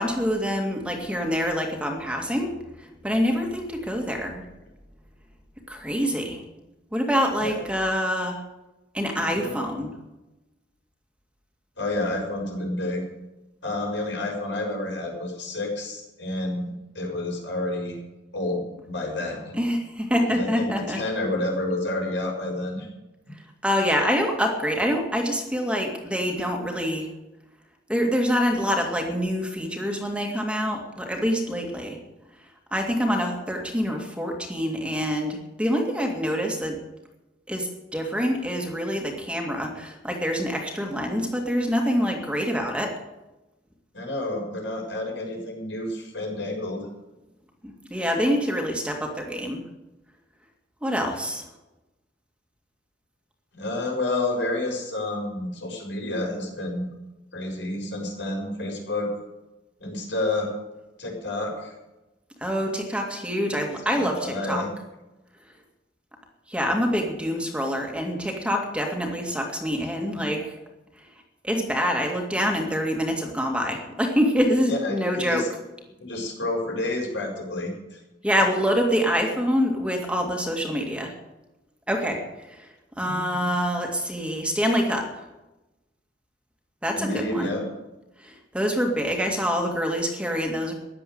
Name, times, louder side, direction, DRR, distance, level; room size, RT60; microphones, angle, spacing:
voice 1, 0.0-4.4 5.7-6.4 6.9-8.4 8.9-9.9 19.5-21.0 23.6-27.1 27.9-32.0 32.7-36.8 37.5-43.0 47.6-49.6 50.8-51.5 62.4-64.6 66.5-70.4 71.4-75.5 78.2-81.1 81.9-82.7 83.0-85.2 86.8-87.6 88.2-90.7, equal, 5° right, 2 dB, 2.2 m, -26 dB
voice 2, 9.2-9.6 11.8-13.0 13.6-18.0 18.3-19.5 20.3-22.9 43.9-46.9 53.5-56.9 57.3-59.1 59.8-60.5 61.0-61.7 63.9-64.7 70.1-70.2 74.7-75.5 76.0-78.0 83.0-83.1 86.9-87.6, left 2 dB, 85° left, 0 dB, 6.5 m, -29 dB
15.0 x 10.5 x 8.0 m, 1.0 s
head